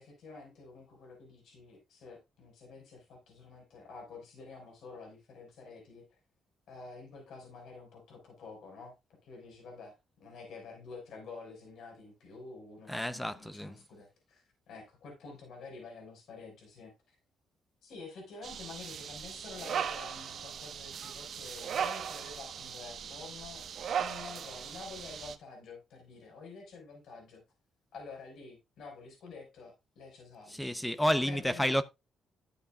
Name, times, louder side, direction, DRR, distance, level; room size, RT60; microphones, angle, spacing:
voice 1, 0.0-6.2 6.7-8.9 9.2-17.2 17.8-23.7 24.0-27.4 27.9-30.7 31.2-31.7, left 4 dB, 75° left, 5.3 m, -49 dB
voice 2, 12.9-13.8 30.5-31.8, equal, 5° left, 0.7 m, -30 dB
sound 1, 18.4-25.4, right 8 dB, 60° right, 1.1 m, -38 dB
12.5 x 8.2 x 2.4 m
cardioid pair, 90°, 0 cm